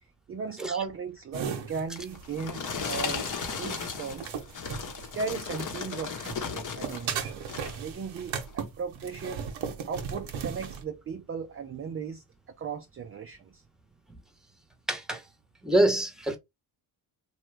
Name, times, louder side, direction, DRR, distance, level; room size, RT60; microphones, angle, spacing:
voice 1, 0.3-4.3 5.1-9.4 9.9-12.2 12.6-13.6, right 5 dB, 30° right, 0.4 m, -37 dB
sound 1, 1.3-5.8 6.2-10.8, right 7 dB, 75° right, 0.9 m, -37 dB
sound 2, 2.0-7.1 7.4-7.8 8.4-8.5, left 5 dB, 40° left, 0.9 m, -35 dB
voice 2, 14.9-15.2 15.6-16.4, right 1 dB, ahead, 0.9 m, -25 dB
3.0 x 2.3 x 3.1 m
supercardioid pair, 65°, 46 cm